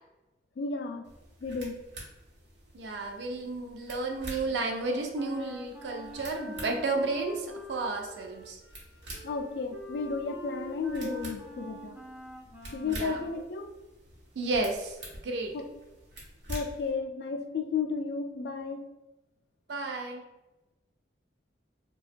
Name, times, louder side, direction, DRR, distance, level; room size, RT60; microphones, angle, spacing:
voice 1, 0.6-1.0 1.4-1.8 9.2-12.0 12.7-13.7 15.5-15.7 16.5-18.9, left 4 dB, 60° left, 5 dB, 0.3 m, -33 dB
sound 1, 1.0-16.9, right 1 dB, 85° right, 0.9 m, -47 dB
voice 2, 2.7-8.6 11.0-11.1 11.6-11.7 12.8-13.2 14.4-15.0 15.2-15.6 19.7-20.2, right 3 dB, 70° right, 3 dB, 0.4 m, -32 dB
Wind instrument woodwind instrument, 4.6-13.4, equal, 10° right, 0.4 m, -45 dB
2.8 x 2.2 x 2.5 m, 1.0 s
head